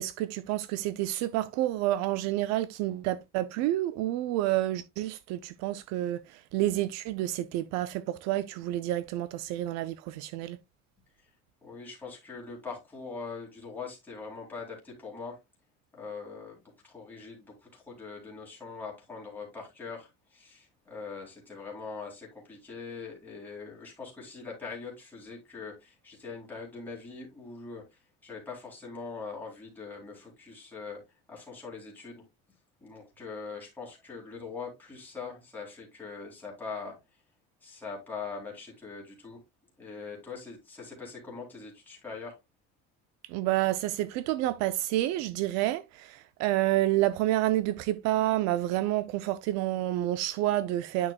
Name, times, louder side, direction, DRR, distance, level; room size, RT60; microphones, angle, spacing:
voice 1, 0.0-10.6 43.2-51.1, right 15 dB, 60° right, 0.5 m, -29 dB
voice 2, 11.6-15.4 15.9-16.6 16.8-31.0 31.3-32.2 32.8-37.0 37.6-39.4 39.8-42.4, left 4 dB, 5° left, 2.7 m, -42 dB
8.9 x 6.4 x 2.2 m
cardioid pair, 175°, 30 cm